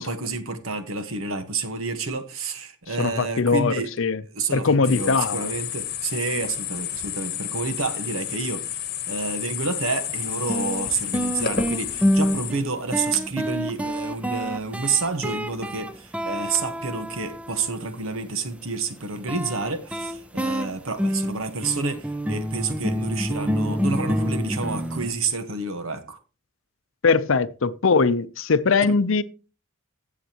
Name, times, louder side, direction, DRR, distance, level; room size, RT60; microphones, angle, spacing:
voice 1, 0.0-3.9 4.3-8.8 9.1-26.2 28.8-28.9, right 4 dB, 75° right, 1.3 m, -29 dB
voice 2, 3.0-4.2 4.5-5.4 27.0-29.2, left 4 dB, 65° left, 0.6 m, -21 dB
sound 1, 4.8-12.5, left 10 dB, 45° left, 1.1 m, -31 dB
sound 2, 10.1-10.2 10.5-17.8 19.3-25.1, equal, 5° right, 0.4 m, -27 dB
16.0 x 7.3 x 2.9 m
head